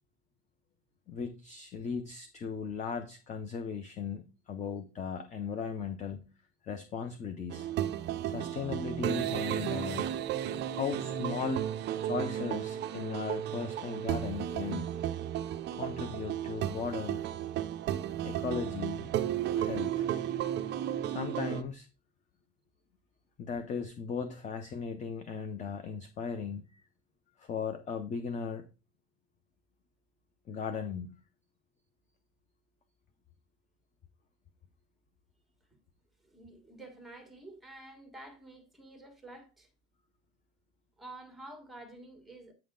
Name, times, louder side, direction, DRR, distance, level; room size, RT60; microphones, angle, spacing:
voice 1, 1.1-6.3 6.6-7.7 8.2-10.1 10.7-11.7 12.0-14.9 15.8-17.2 18.2-19.1 19.5-20.1 21.0-21.9 23.4-26.8 27.4-28.6 30.5-31.1, left 6 dB, 20° left, 0.5 m, -37 dB
sound 1, 7.5-21.6, right 11 dB, 30° right, 0.4 m, -34 dB
voice 2, 36.2-39.7 41.0-42.5, right 2 dB, ahead, 1.5 m, -49 dB
8.7 x 5.5 x 3.7 m
cardioid pair, 160°, 37 cm